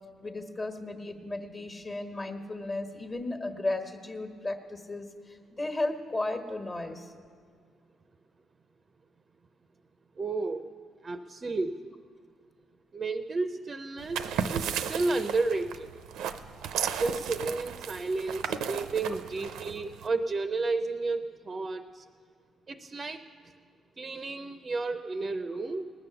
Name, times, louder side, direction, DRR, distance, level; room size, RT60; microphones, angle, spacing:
voice 1, 0.2-7.1 18.7-18.8, left 2 dB, 30° left, 6 dB, 1.4 m, -35 dB
voice 2, 10.2-10.7 11.0-12.0 12.9-15.9 17.0-22.0 22.7-23.2 24.0-25.9, right 3 dB, 35° right, 8 dB, 0.5 m, -32 dB
sound 1, 14.0-20.1, right 8 dB, 90° right, 0.5 m, -35 dB
19.0 x 6.9 x 6.9 m, 2.1 s
cardioid pair, 90°, 0 cm